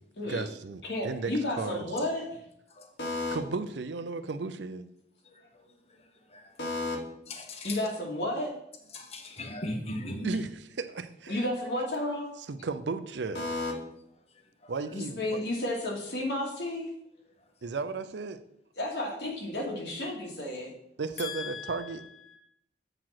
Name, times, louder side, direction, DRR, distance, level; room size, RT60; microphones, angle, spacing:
voice 1, 0.3-1.8 3.3-4.9 10.2-11.4 12.5-13.4 14.7-15.4 17.6-18.4 21.0-22.0, right 4 dB, 80° right, 11 dB, 0.6 m, -35 dB
voice 2, 0.8-2.4 3.0-3.4 6.6-7.0 7.6-8.6 11.3-12.3 13.3-13.7 14.9-16.9 18.8-20.7 21.2-22.4, left 1 dB, 70° left, -1 dB, 2.3 m, -32 dB
voice 3, 7.3-7.8 8.9-10.3 14.6-14.7, left 1 dB, 35° left, 4 dB, 1.1 m, -37 dB
7.6 x 4.8 x 5.9 m, 0.75 s
head